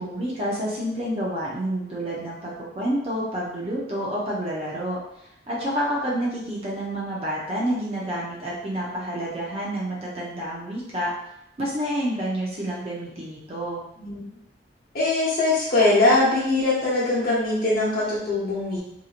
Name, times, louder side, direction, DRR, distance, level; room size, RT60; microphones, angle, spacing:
voice 1, 0.0-5.0 5.5-11.1 11.6-13.8, equal, 35° right, -5 dB, 0.6 m, -28 dB
voice 2, 14.9-18.8, left 2 dB, 55° left, -6 dB, 0.9 m, -21 dB
2.8 x 2.6 x 2.4 m, 0.79 s
head